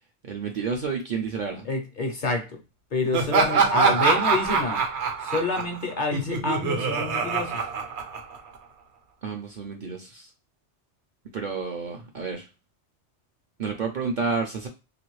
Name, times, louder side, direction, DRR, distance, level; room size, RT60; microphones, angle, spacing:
voice 1, 0.2-1.7 9.2-10.3 11.3-12.5 13.6-14.7, right 5 dB, 55° right, 0.5 m, -30 dB
voice 2, 1.6-2.5 2.9-4.8 5.2-7.6, left 3 dB, 55° left, 0.6 m, -27 dB
Laughter, 3.1-8.6, right 5 dB, 70° right, 1.0 m, -24 dB
3.0 x 2.4 x 3.1 m
omnidirectional pair, 1.2 m